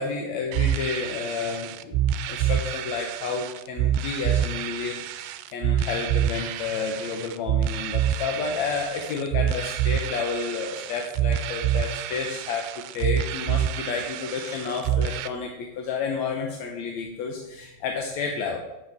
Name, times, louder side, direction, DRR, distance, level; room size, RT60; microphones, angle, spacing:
voice 1, 0.0-18.6, left 5 dB, 65° left, 1 dB, 1.9 m, -31 dB
sound 1, 0.5-15.3, right 10 dB, 80° right, 2.2 m, -27 dB
12.5 x 8.2 x 3.6 m, 1.0 s
omnidirectional pair, 4.2 m